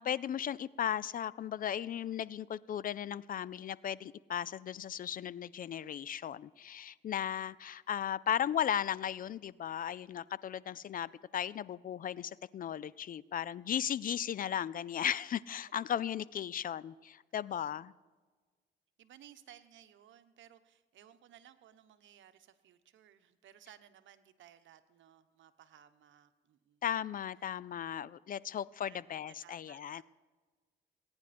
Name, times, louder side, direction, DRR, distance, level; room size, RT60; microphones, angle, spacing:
voice 1, 0.0-17.9 26.8-30.0, left 9 dB, 45° left, 21 dB, 0.4 m, -36 dB
voice 2, 17.4-17.7 19.0-26.8 28.8-30.0, right 10 dB, 75° right, 10 dB, 1.0 m, -59 dB
20.0 x 9.7 x 4.3 m, 1.4 s
cardioid pair, 90°, 20 cm